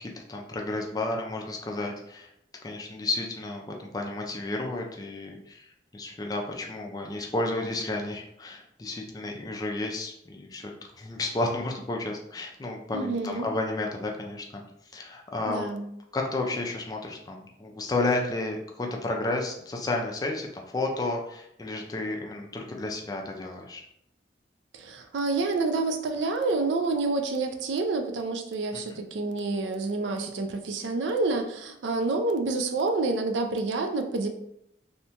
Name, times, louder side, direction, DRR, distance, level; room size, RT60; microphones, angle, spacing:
voice 1, 0.0-2.3 2.6-10.7 11.0-14.6 14.9-15.7 16.1-23.8 28.9-29.0, left 2 dB, 20° left, 1 dB, 0.3 m, -32 dB
voice 2, 12.9-13.5 15.4-15.9 24.7-34.3, right 3 dB, 85° right, 5 dB, 0.4 m, -28 dB
2.8 x 2.2 x 2.7 m, 0.76 s
head